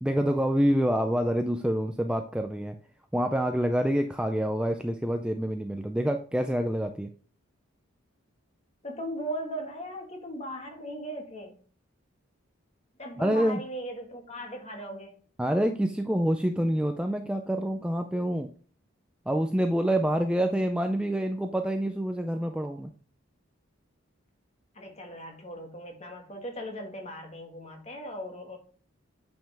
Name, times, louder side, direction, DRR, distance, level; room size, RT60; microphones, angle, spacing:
voice 1, 0.0-2.8 3.1-7.1 13.2-13.6 15.4-18.5 19.3-22.9, equal, 5° right, 6 dB, 0.4 m, -27 dB
voice 2, 8.8-11.6 13.0-15.1 24.7-28.6, equal, 30° left, 3 dB, 1.6 m, -38 dB
8.8 x 5.4 x 3.4 m, 0.43 s
head